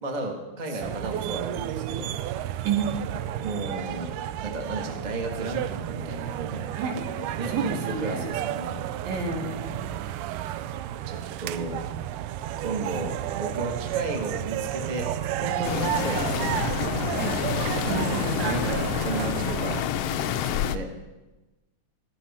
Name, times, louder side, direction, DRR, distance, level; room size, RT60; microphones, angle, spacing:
voice 1, 0.0-2.1 3.4-4.1 4.4-6.7 7.4-7.7 8.0-8.8 11.1-11.8 12.6-16.9 17.8-19.8 20.1-20.9, right 2 dB, 25° right, 2 dB, 0.9 m, -34 dB
sound 1, 0.8-19.8, right 11 dB, 90° right, 2.1 m, -32 dB
voice 2, 2.6-3.0 6.7-7.1 7.5-8.5 9.0-9.9 17.1-17.4 17.9-18.7, right 5 dB, 70° right, 2 dB, 3.1 m, -30 dB
sound 2, 15.6-20.8, left 10 dB, 85° left, 1.3 m, -28 dB
14.5 x 14.0 x 4.3 m, 1.1 s
omnidirectional pair, 3.5 m